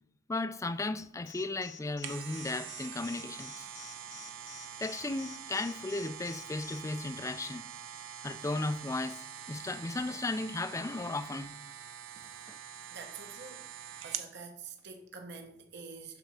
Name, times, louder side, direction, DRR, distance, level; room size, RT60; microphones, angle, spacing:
voice 1, 0.3-3.7 4.8-7.7 8.2-11.6 12.5-12.6, left 2 dB, 15° left, 0.3 m, -35 dB
Alarm, 1.3-6.8, left 8 dB, 60° left, 0.8 m, -50 dB
sound 1, 1.7-14.3 14.8-14.9, right 9 dB, 75° right, 0.7 m, -45 dB
voice 2, 12.9-13.7 14.0-16.2, right 5 dB, 60° right, 1.0 m, -46 dB
7.9 x 6.0 x 4.2 m
head